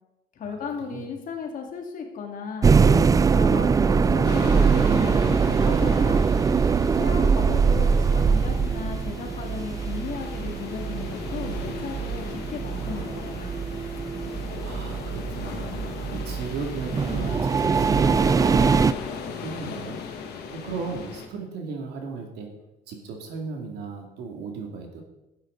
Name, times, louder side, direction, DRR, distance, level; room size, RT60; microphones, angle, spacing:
voice 1, 0.4-6.2 7.0-13.5, left 5 dB, 55° left, 3 dB, 2.1 m, -36 dB
sound 1, 2.6-18.9, right 5 dB, 20° right, 0.3 m, -22 dB
sound 2, 4.2-21.3, left 6 dB, 75° left, 1.7 m, -38 dB
voice 2, 14.6-19.0 19.3-20.0 20.5-22.5 22.9-25.0, right 4 dB, 80° right, 3 dB, 2.3 m, -36 dB
12.0 x 9.0 x 3.9 m, 0.94 s
cardioid pair, 110°, 17 cm